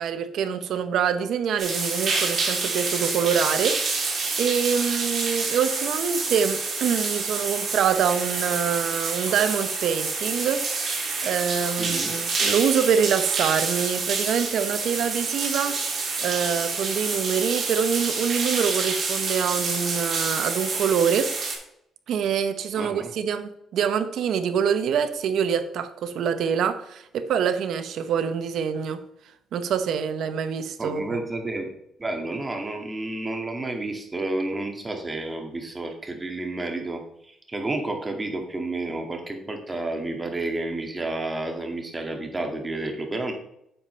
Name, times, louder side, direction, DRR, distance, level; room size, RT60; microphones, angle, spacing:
voice 1, 0.0-10.6 10.9-21.3 22.1-29.0 29.5-31.2, right 7 dB, 75° right, 10 dB, 0.9 m, -25 dB
sound 1, 1.6-21.5, right 4 dB, 50° right, 3.1 m, -27 dB
voice 2, 11.8-12.1 22.8-23.1 30.8-31.7 32.0-43.3, right 2 dB, 20° right, 3 dB, 2.1 m, -30 dB
10.0 x 6.8 x 3.3 m, 0.75 s
cardioid pair, 90°, 0 cm